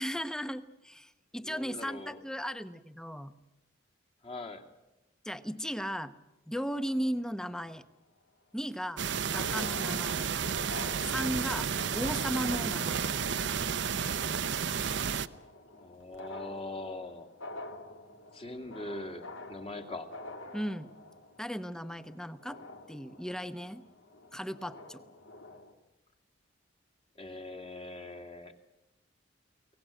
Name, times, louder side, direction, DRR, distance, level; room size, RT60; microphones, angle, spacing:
voice 1, 0.0-3.3 5.2-6.1 6.5-7.8 8.5-9.0 9.3-10.3 11.0-11.7 11.9-13.1 20.5-20.9 21.4-22.6 22.9-23.8 24.3-25.0, equal, 5° left, 13 dB, 0.8 m, -36 dB
voice 2, 1.4-2.2 4.2-4.6 15.7-17.3 18.3-20.1 27.2-28.5, left 2 dB, 30° left, 6 dB, 2.1 m, -42 dB
sound 1, 6.7-7.8 8.9-9.0 9.2-25.7, left 2 dB, 90° left, 2.5 m, -48 dB
sound 2, 9.0-15.3, right 7 dB, 65° right, 0.7 m, -32 dB
24.0 x 18.5 x 9.0 m, 0.98 s
head